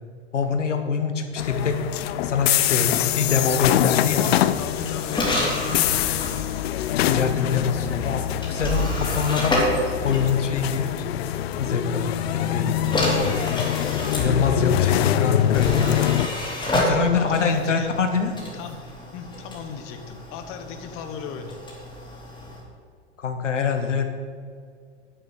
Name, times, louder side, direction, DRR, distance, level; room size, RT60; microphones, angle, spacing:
voice 1, 0.3-1.8 2.2-4.3 7.0-9.5 10.0-10.9 11.6-13.2 14.2-16.1 16.7-18.3 23.2-24.1, left 5 dB, 85° left, 6 dB, 1.4 m, -24 dB
sound 1, 1.4-16.3, left 12 dB, 60° left, 0.7 m, -24 dB
sound 2, 4.1-11.0 12.1-22.6, left 1 dB, 15° left, 3.8 m, -30 dB
voice 2, 4.5-6.2 14.3-15.1 16.9-17.9 18.5-18.8 19.1-21.6, left 6 dB, 35° left, 6 dB, 1.4 m, -36 dB
10.5 x 7.0 x 8.1 m, 2.1 s
hypercardioid pair, 110°, 36 cm